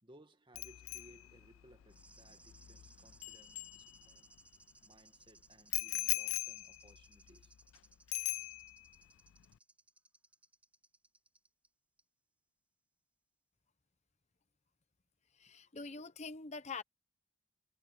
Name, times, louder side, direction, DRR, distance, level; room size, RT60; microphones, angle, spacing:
voice 1, 0.0-4.3 4.8-7.5, right 1 dB, 25° right, 2.0 m, -63 dB
Bicycle bell, 0.5-4.4 5.7-7.8 8.1-9.0 9.3-9.5, left 19 dB, 85° left, 0.4 m, -41 dB
sound 1, 1.9-11.7 12.0-12.1, right 2 dB, 5° right, 5.7 m, -63 dB
voice 2, 15.4-16.8, left 4 dB, 35° left, 0.8 m, -45 dB
head